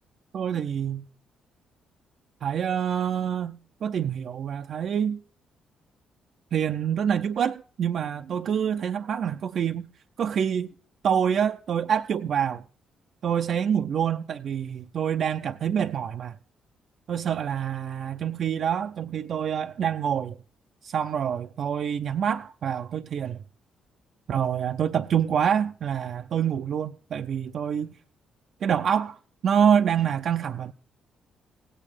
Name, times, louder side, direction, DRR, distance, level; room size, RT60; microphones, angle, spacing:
voice 1, 0.3-1.0 2.4-5.2 6.5-9.9 10.2-10.7 11.0-12.6 13.2-16.3 17.1-20.4 20.8-23.4 24.3-27.9 28.6-29.2 29.4-30.7, right 8 dB, 60° right, 0.5 m, -26 dB
16.5 x 8.8 x 5.0 m
cardioid pair, 90°, 0 cm